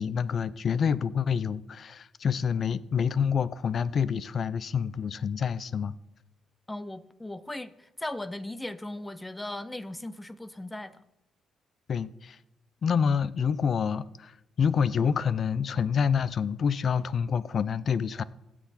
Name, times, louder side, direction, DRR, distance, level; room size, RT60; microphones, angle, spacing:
voice 1, 0.0-5.9 11.9-12.4 12.8-18.2, left 7 dB, 50° left, 0.5 m, -27 dB
voice 2, 6.7-11.0, left 1 dB, 10° left, 0.6 m, -38 dB
16.5 x 6.2 x 4.2 m
cardioid pair, 90°, 0 cm